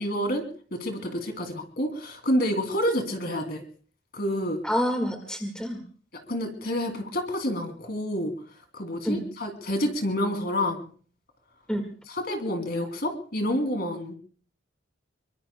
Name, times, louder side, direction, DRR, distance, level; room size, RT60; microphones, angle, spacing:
voice 1, 0.0-3.6 4.1-4.6 6.3-8.3 8.7-10.9 12.1-14.1, equal, 50° left, 5 dB, 2.7 m, -28 dB
voice 2, 4.6-5.8 9.0-9.2 11.7-11.8, equal, 5° left, 4 dB, 1.7 m, -27 dB
24.5 x 23.5 x 2.2 m, 0.43 s
head